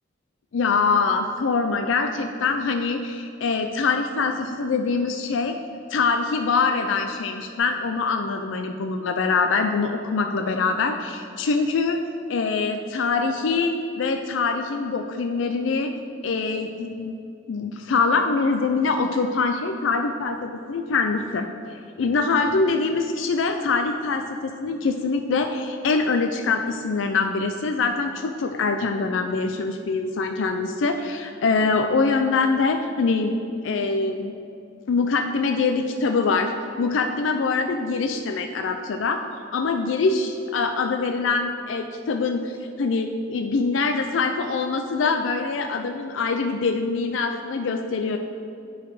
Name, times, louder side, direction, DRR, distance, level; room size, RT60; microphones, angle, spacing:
voice 1, 0.5-5.5 5.9-12.0 12.3-15.9 16.2-17.1 17.5-21.5 22.0-33.4 33.6-34.3 34.9-36.5 36.8-39.2 39.5-48.2, left 4 dB, 70° left, 5 dB, 0.4 m, -24 dB
9.6 x 4.0 x 4.8 m, 2.5 s
head